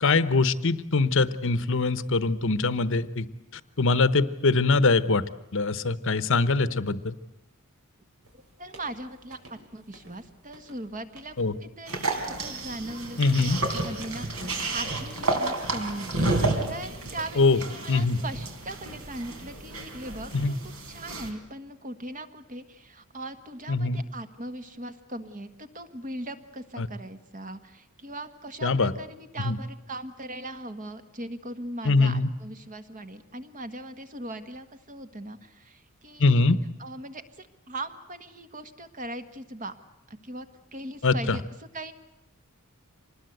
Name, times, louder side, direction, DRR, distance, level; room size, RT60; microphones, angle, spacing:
voice 1, 0.0-3.2 3.8-7.1 11.4-11.5 13.2-13.6 17.4-17.6 17.9-18.2 20.3-20.5 23.7-24.0 26.8-26.9 28.6-28.9 29.4-29.6 31.8-32.3 36.2-36.6 41.0-41.4, left 3 dB, 60° left, 14 dB, 1.0 m, -23 dB
sound 1, 8.2-15.7, right 1 dB, 85° right, 6.2 m, -53 dB
voice 2, 8.3-14.3 14.7-36.4 36.8-39.8 40.2-40.5 40.7-41.4 41.7-41.9, right 1 dB, 35° right, 9 dB, 1.6 m, -39 dB
sound 2, 11.9-21.3, right 2 dB, 70° right, 3.8 m, -31 dB
26.0 x 20.0 x 8.1 m, 0.93 s
head